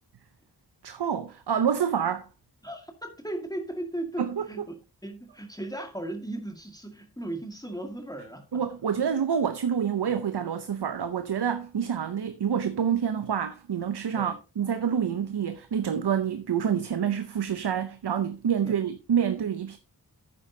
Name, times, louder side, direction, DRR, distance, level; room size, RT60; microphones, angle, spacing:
voice 1, 0.8-2.3 4.2-4.5 8.5-19.8, right 8 dB, 85° right, 0.7 m, -27 dB
voice 2, 2.6-4.7 5.0-8.6 14.1-14.4 18.6-18.8, right 1 dB, 10° left, 1.8 m, -37 dB
11.0 x 8.4 x 2.7 m
wide cardioid pair, 45°, 39 cm